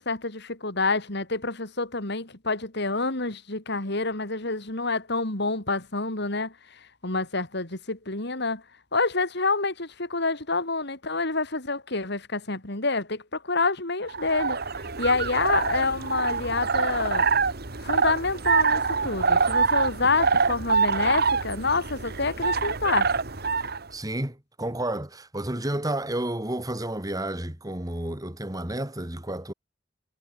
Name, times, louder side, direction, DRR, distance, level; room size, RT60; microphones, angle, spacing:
voice 1, 0.0-6.5 7.0-8.6 8.9-14.6 15.0-17.3 17.8-23.1, left 3 dB, 65° left, 4.1 m, -27 dB
sound 1, 14.1-23.8, right 5 dB, 55° right, 2.1 m, -25 dB
voice 2, 23.9-29.5, right 1 dB, 20° right, 3.0 m, -31 dB
head